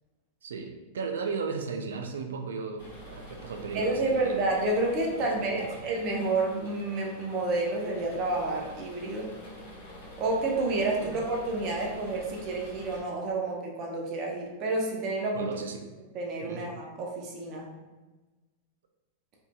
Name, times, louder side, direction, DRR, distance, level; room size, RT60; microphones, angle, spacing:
voice 1, 0.4-4.3 5.4-5.8 11.0-11.2 15.3-15.8 16.4-16.7, right 5 dB, 85° right, 5 dB, 0.3 m, -35 dB
sound 1, 2.8-13.0, equal, 65° left, 1.0 m, -46 dB
voice 2, 3.7-9.3 10.2-15.5 16.1-17.7, right 2 dB, 45° right, -1 dB, 0.7 m, -29 dB
2.6 x 2.6 x 2.2 m, 1.2 s
hypercardioid pair, 120°, 0 cm